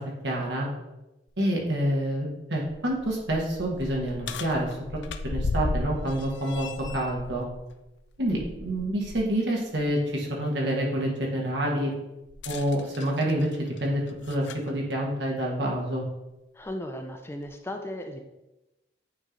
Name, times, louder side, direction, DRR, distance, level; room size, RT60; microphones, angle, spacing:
voice 1, 0.2-0.7 1.4-4.7 5.2-6.7 6.9-7.4 8.2-11.9 12.5-16.0, right 1 dB, 75° right, -2 dB, 1.7 m, -27 dB
sound 1, 1.3-1.4 1.9-2.0 2.6-9.3 9.7-9.9 12.3-14.7 15.7-15.8 16.6-16.7, left 3 dB, 85° left, 0.4 m, -36 dB
voice 2, 16.5-18.2, left 1 dB, 15° left, 5 dB, 0.4 m, -36 dB
8.7 x 3.1 x 3.9 m, 0.97 s
head